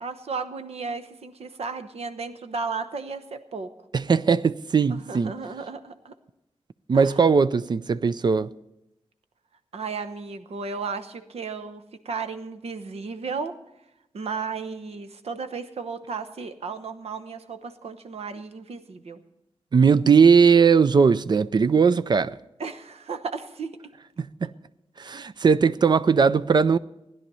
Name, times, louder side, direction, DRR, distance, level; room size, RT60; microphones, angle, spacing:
voice 1, 0.0-3.7 4.9-6.1 6.9-7.2 9.7-13.5 14.1-19.2 22.6-23.8, right 4 dB, 70° right, 0.9 m, -34 dB
voice 2, 3.9-5.3 6.9-8.5 19.7-22.3 24.2-24.5 25.0-26.8, right 5 dB, 45° right, 0.4 m, -19 dB
16.0 x 10.5 x 5.5 m
wide cardioid pair, 125°, 11 cm